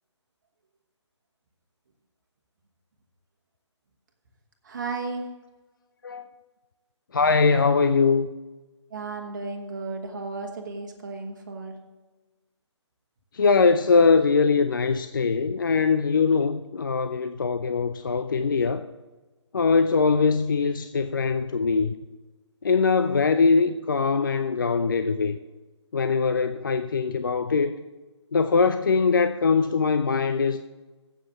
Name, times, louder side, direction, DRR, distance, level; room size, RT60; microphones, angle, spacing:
voice 1, 4.6-5.3 8.9-11.7, right 3 dB, 40° right, 1.3 m, -34 dB
voice 2, 7.1-8.3 13.3-18.9 19.5-21.9 22.6-25.4 25.9-27.8 28.3-30.6, left 4 dB, 45° left, 0.4 m, -22 dB
7.9 x 7.6 x 7.1 m
figure-of-eight pair, 145°, 15 cm